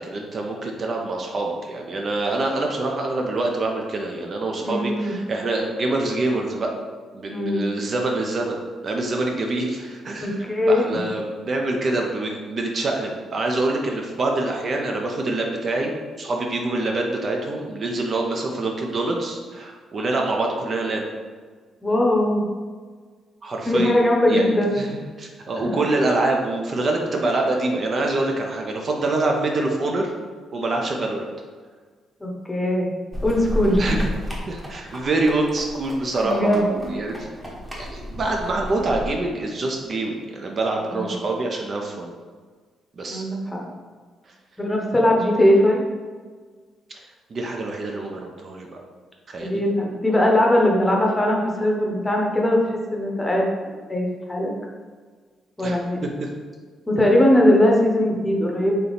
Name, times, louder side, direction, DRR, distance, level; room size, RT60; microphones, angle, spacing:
voice 1, 0.0-6.7 7.1-8.6 8.8-21.0 23.4-24.0 24.3-30.1 30.5-31.3 33.8-34.1 34.5-37.3 37.8-42.1 43.0-43.2 46.9-47.0 47.3-48.8 49.3-49.6 55.6-56.3, right 2 dB, 45° right, 1 dB, 0.5 m, -25 dB
voice 2, 4.6-5.1 7.3-7.6 10.2-10.9 21.8-22.4 23.7-24.8 25.6-25.7 32.2-32.9 33.2-33.8 36.2-36.6 43.1-43.6 44.6-45.8 49.4-53.5 53.9-54.5 55.6-56.0 56.9-58.8, left 1 dB, 15° left, -1 dB, 0.8 m, -20 dB
sound 1, 33.1-39.1, equal, 15° right, 1.0 m, -32 dB
3.4 x 2.9 x 3.9 m, 1.5 s
cardioid pair, 90°, 0 cm